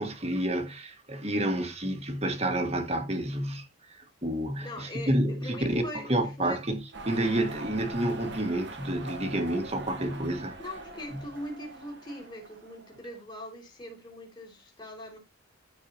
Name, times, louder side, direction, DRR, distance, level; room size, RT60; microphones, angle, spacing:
voice 1, 0.0-5.8 6.1-6.8 7.1-10.6, right 1 dB, 30° right, 1.6 m, -29 dB
voice 2, 4.6-6.6 10.6-15.2, left 1 dB, 20° left, 3.2 m, -41 dB
sound 1, 6.9-13.1, right 2 dB, 55° right, 1.3 m, -43 dB
14.0 x 4.7 x 2.8 m
head